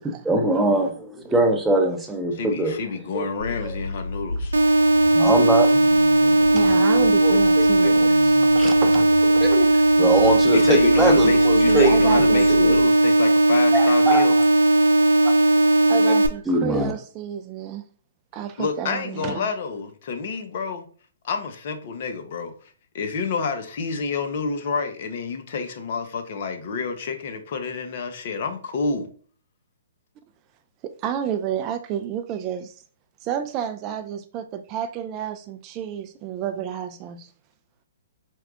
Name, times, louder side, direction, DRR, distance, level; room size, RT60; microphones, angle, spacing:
voice 1, 0.0-2.8 3.1-3.3 3.6-3.7 5.1-5.8 7.2-7.9 8.6-8.7 9.4-9.7 10.0-12.3 12.6-12.8 13.7-14.3 15.8-16.1 16.5-16.9, right 2 dB, 10° right, 0.7 m, -22 dB
voice 2, 2.3-4.6 10.5-14.4 18.6-20.8 21.2-22.5 22.9-29.1, left 5 dB, 55° left, 0.8 m, -29 dB
Car / Idling / Accelerating revving vroom, 3.4-12.8, left 2 dB, 90° left, 0.5 m, -33 dB
sound 1, 4.5-16.3, right 2 dB, 80° right, 0.5 m, -17 dB
voice 3, 6.5-9.8 11.7-12.5 15.9-17.8 18.3-19.5 30.8-32.8 33.2-37.3, right 9 dB, 30° right, 0.4 m, -30 dB
4.6 x 2.3 x 3.6 m
hypercardioid pair, 130°, 0 cm